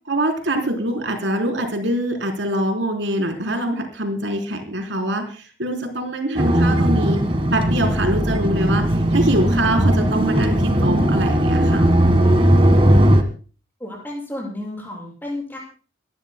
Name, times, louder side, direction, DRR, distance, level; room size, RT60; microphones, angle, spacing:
voice 1, 0.1-7.2 7.5-11.8, right 1 dB, 70° right, 4 dB, 3.9 m, -24 dB
sound 1, 6.3-13.2, right 1 dB, 30° right, 1.7 m, -17 dB
voice 2, 13.8-15.6, left 1 dB, 10° left, -4 dB, 6.7 m, -32 dB
28.5 x 14.5 x 2.2 m, 0.38 s
head